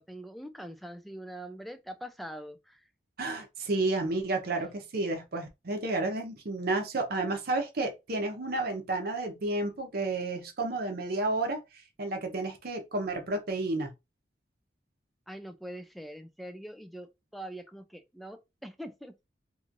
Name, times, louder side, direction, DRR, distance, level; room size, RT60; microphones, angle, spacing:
voice 1, 0.0-2.8 15.3-19.2, right 1 dB, ahead, 0.3 m, -43 dB
voice 2, 3.2-13.9, right 2 dB, 55° right, 0.7 m, -31 dB
3.0 x 2.7 x 2.5 m
head